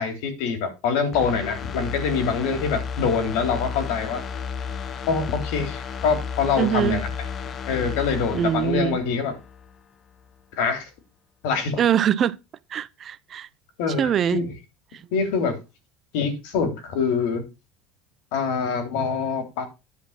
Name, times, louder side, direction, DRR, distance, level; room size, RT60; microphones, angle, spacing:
voice 1, 0.0-4.2 5.1-7.1 7.7-9.3 10.5-10.9 11.4-11.8 13.8-14.5 15.1-15.6 16.1-17.4 18.3-19.7, left 5 dB, 75° left, 3.3 m, -25 dB
sound 1, 1.1-9.8 10.1-10.3, left 6 dB, 35° left, 0.9 m, -33 dB
voice 2, 6.6-7.0 8.3-9.0 11.8-12.4 12.7-13.5 14.0-14.4, right 9 dB, 35° right, 0.6 m, -23 dB
10.0 x 4.2 x 7.3 m
supercardioid pair, 130°, 0 cm